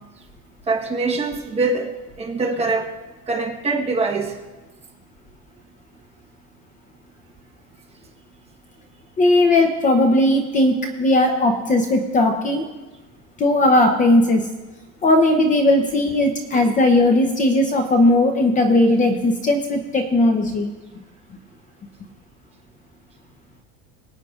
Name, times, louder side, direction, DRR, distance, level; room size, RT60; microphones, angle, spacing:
voice 1, 0.7-1.9 2.2-2.9 3.3-4.4 16.5-16.6, right 3 dB, 20° right, 0 dB, 1.2 m, -23 dB
voice 2, 9.2-12.7 13.4-14.4 15.0-20.7, left 1 dB, 25° left, 5 dB, 0.7 m, -17 dB
23.5 x 9.2 x 2.5 m, 1.2 s
cardioid pair, 160°, 33 cm